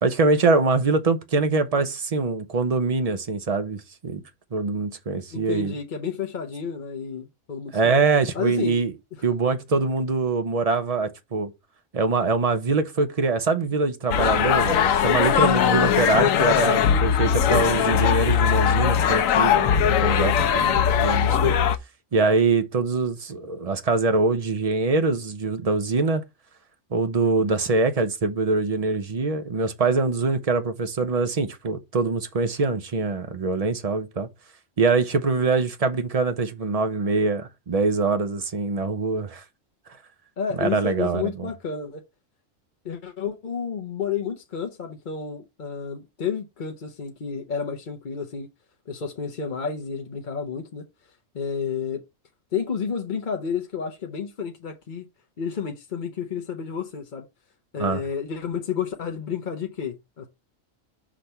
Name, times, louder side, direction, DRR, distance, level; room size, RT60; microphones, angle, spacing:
voice 1, 0.0-4.2 4.5-5.7 7.7-8.9 9.2-11.5 11.9-21.6 22.1-26.2 26.9-34.3 34.8-39.4 40.6-41.5 57.8-58.0, right 3 dB, 35° right, 0.7 m, -24 dB
voice 2, 5.3-8.0 8.3-8.8 40.4-42.0 42.8-48.5 48.9-50.8 51.3-52.0 52.5-55.1 55.4-57.3 57.7-60.3, left 6 dB, 45° left, 0.9 m, -31 dB
sound 1, 14.1-21.8, left 8 dB, 85° left, 1.0 m, -20 dB
6.2 x 3.4 x 5.5 m
omnidirectional pair, 1.4 m